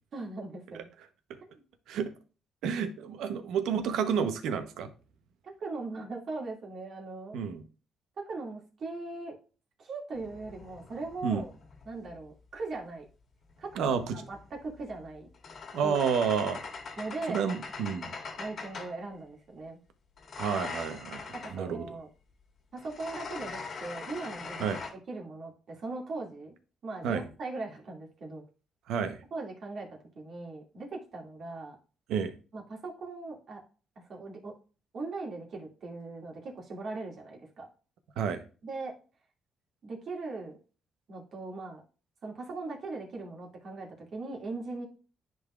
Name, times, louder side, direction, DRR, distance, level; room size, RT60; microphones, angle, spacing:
voice 1, 0.1-0.9 5.4-7.4 8.2-9.4 9.8-11.5 11.8-13.1 13.6-13.8 14.1-15.3 15.8-16.0 17.0-17.4 18.4-19.8 21.3-22.1 22.7-24.8 25.1-26.6 26.8-28.4 29.3-31.8 32.5-33.6 34.0-34.5 34.9-37.7 38.6-39.0 39.8-40.6 41.1-41.8 42.2-44.9, right 3 dB, 60° right, -1 dB, 2.2 m, -39 dB
voice 2, 2.6-4.9 7.3-7.6 11.2-11.4 13.7-14.2 15.7-16.6 17.3-18.1 20.4-21.9 24.6-24.8 27.0-27.2 28.9-29.2 32.1-32.3 38.2-38.4, right 7 dB, 85° right, 8 dB, 0.9 m, -30 dB
sound 1, 10.1-12.3 13.5-19.0 20.2-21.6 22.8-24.9, left 4 dB, 55° left, 1.6 m, -42 dB
10.5 x 4.0 x 2.4 m, 0.36 s
cardioid pair, 90°, 0 cm